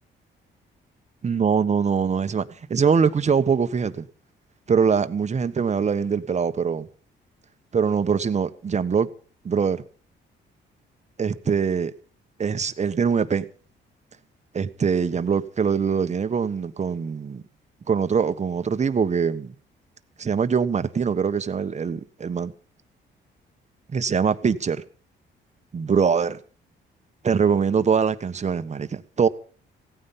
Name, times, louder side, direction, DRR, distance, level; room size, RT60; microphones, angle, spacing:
voice 1, 1.2-4.1 4.7-6.9 7.7-9.1 9.4-9.8 11.2-11.9 12.4-13.4 14.5-17.4 17.9-19.5 20.2-22.5 23.9-24.8 25.7-26.4 27.2-29.3, right 6 dB, 35° right, 1.3 m, -23 dB
16.5 x 9.6 x 7.2 m
cardioid pair, 90°, 20 cm